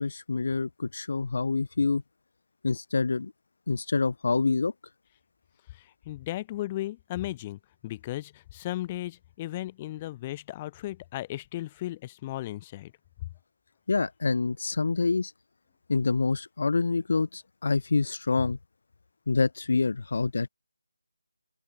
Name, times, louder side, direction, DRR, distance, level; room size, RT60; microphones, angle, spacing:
voice 1, 0.0-2.0 2.6-3.3 3.7-4.7 13.9-15.3 15.9-18.6 19.3-20.5, left 4 dB, 50° left, 0.8 m, -26 dB
voice 2, 5.7-12.9 13.2-13.3, left 15 dB, 15° left, 1.7 m, -36 dB
open air
figure-of-eight pair, 170°, 0 cm